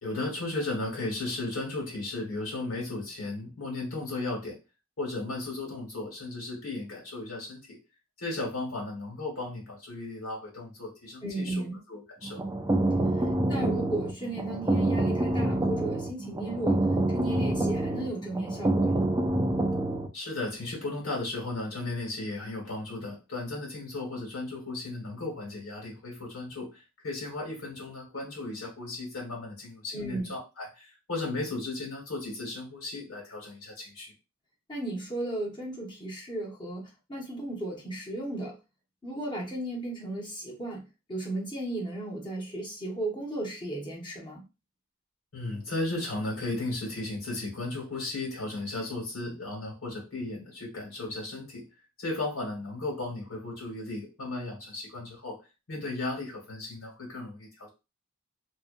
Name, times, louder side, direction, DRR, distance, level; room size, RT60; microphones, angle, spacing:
voice 1, 0.0-4.6 5.0-7.8 8.2-12.4 20.1-34.1 45.3-51.6 52.0-55.4 55.7-57.7, left 2 dB, 85° left, 1.5 m, -35 dB
voice 2, 11.2-11.8 13.2-16.8 17.1-19.0 29.9-30.3 34.7-38.6 39.0-40.8 41.1-44.4, right 2 dB, 25° left, 0.8 m, -35 dB
sound 1, 12.2-20.1, right 1 dB, 15° right, 0.3 m, -27 dB
2.7 x 2.2 x 2.5 m
head